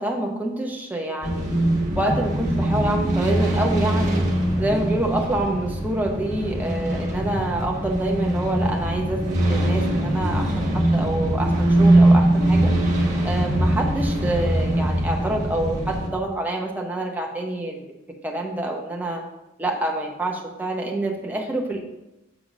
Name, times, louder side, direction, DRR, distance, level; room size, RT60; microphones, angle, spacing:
voice 1, 0.0-1.5 1.9-4.2 4.6-12.7 13.2-17.9 18.2-19.2 19.6-21.8, right 1 dB, 10° right, 0 dB, 0.8 m, -27 dB
sound 1, 1.2-16.1, right 1 dB, 35° right, 1.5 m, -22 dB
7.1 x 3.6 x 6.1 m, 0.95 s
head